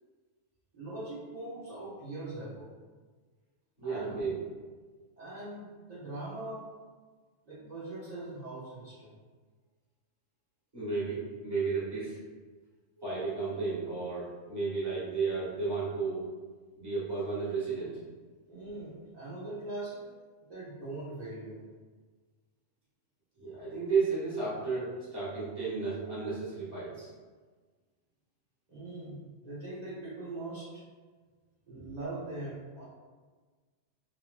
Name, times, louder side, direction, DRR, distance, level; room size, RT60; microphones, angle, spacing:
voice 1, 0.7-2.7 3.8-4.4 5.2-6.7 7.4-9.2 18.5-20.1 20.5-21.7 28.7-30.8 31.6-32.8, right 2 dB, 35° right, -12 dB, 0.9 m, -41 dB
voice 2, 3.8-4.3 10.7-12.2 13.0-16.3 16.8-18.0 23.4-27.1, right 4 dB, 20° right, -11 dB, 1.4 m, -33 dB
3.0 x 2.8 x 2.2 m, 1.4 s
omnidirectional pair, 1.3 m